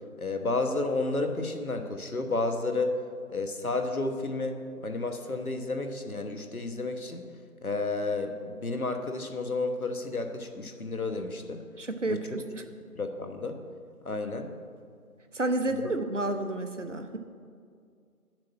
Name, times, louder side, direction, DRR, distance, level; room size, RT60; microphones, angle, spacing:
voice 1, 0.2-3.0 3.3-7.3 7.6-11.6 12.1-12.2 12.9-13.6 14.0-14.5 15.8-15.9, left 3 dB, 70° left, 6 dB, 1.2 m, -31 dB
voice 2, 11.8-12.6 15.3-17.2, right 2 dB, 55° right, 7 dB, 0.7 m, -30 dB
8.4 x 7.5 x 6.1 m, 2.2 s
figure-of-eight pair, 180°, 45 cm